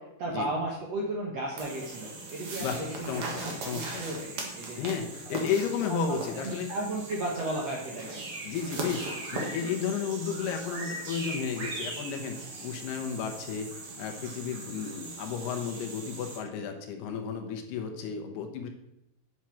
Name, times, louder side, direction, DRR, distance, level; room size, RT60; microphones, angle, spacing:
voice 1, 0.0-4.8 5.3-5.5 5.9-6.2 6.7-8.2, right 2 dB, 65° right, -2 dB, 1.7 m, -35 dB
sound 1, 1.6-16.4, right 2 dB, 50° right, 1.9 m, -39 dB
voice 2, 3.1-4.1 4.8-6.7 8.4-13.7 14.0-18.7, left 7 dB, 80° left, 4 dB, 3.1 m, -33 dB
9.3 x 6.3 x 5.8 m, 0.85 s
omnidirectional pair, 4.7 m